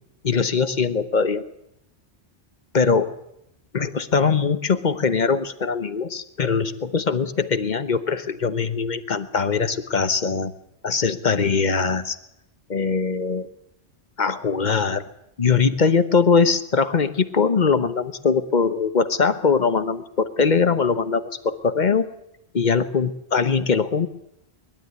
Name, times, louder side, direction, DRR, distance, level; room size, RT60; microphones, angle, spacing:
voice 1, 0.2-1.4 2.7-3.1 3.7-10.5 10.8-12.2 12.7-13.5 14.2-15.0 15.4-22.1 22.5-24.1, left 5 dB, 45° left, 11 dB, 1.1 m, -21 dB
22.0 x 12.5 x 9.5 m, 0.83 s
omnidirectional pair, 1.1 m